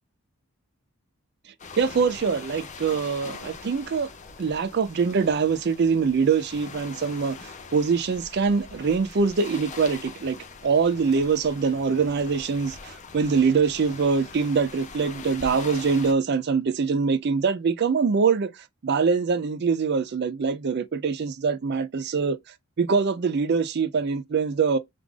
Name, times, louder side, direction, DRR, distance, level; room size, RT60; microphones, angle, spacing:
sound 1, 1.6-16.1, left 4 dB, 30° left, 0.5 m, -42 dB
voice 1, 1.8-4.1 4.4-10.4 10.6-18.5 18.8-22.4 22.8-24.8, right 5 dB, 45° right, 0.4 m, -24 dB
3.3 x 2.5 x 3.4 m
head